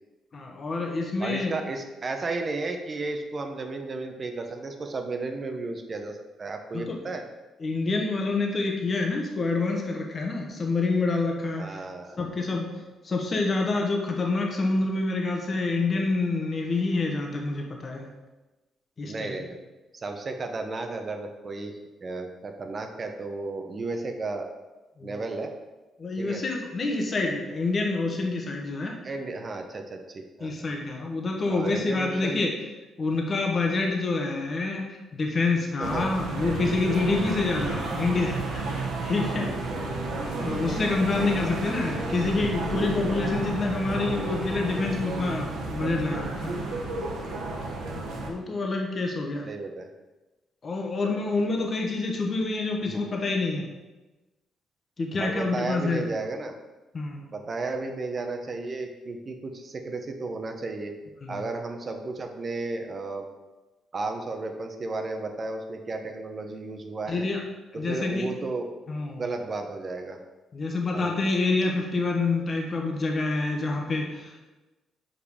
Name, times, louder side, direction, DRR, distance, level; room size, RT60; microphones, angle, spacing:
voice 1, 0.3-1.5 6.7-7.0 7.6-11.6 12.2-12.7 13.0-18.1 19.0-19.4 25.0-25.1 26.0-28.9 30.4-32.5 33.0-39.5 39.7-39.8 40.4-46.8 48.3-49.4 50.6-53.7 55.0-56.1 56.9-57.3 61.2-61.4 67.1-67.4 67.7-68.3 68.9-69.2 70.5-74.4, left 3 dB, 40° left, 1 dB, 1.2 m, -27 dB
voice 2, 1.2-7.2 11.6-12.2 19.1-19.6 20.0-21.7 22.0-24.5 25.0-25.5 26.2-26.4 29.0-30.7 31.5-32.4 35.8-36.1 39.2-39.4 40.7-41.6 49.4-49.9 55.2-56.5 57.3-60.9 61.3-63.3 63.9-67.3 67.7-68.7 69.2-70.2 70.9-71.1, right 3 dB, 40° right, 5 dB, 0.8 m, -33 dB
sound 1, 35.8-48.3, right 3 dB, 85° right, 1.3 m, -32 dB
sound 2, 39.3-44.7, left 1 dB, 10° left, 0.5 m, -40 dB
5.2 x 5.1 x 4.9 m, 1.1 s
cardioid pair, 90°, 0 cm